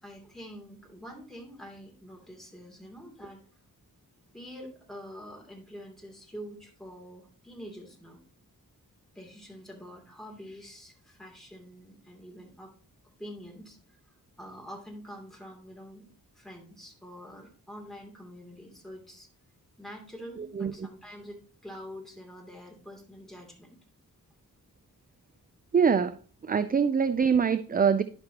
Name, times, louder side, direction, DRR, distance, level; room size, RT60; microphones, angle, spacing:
voice 1, 0.0-3.4 4.3-8.2 9.1-12.7 13.2-13.8 14.4-16.1 16.3-19.3 19.8-23.8, equal, ahead, -1 dB, 2.8 m, -46 dB
voice 2, 20.4-20.9 25.7-26.2 26.4-28.0, right 6 dB, 25° right, 12 dB, 0.4 m, -24 dB
11.0 x 6.1 x 2.9 m, 0.43 s
wide cardioid pair, 85°, 35 cm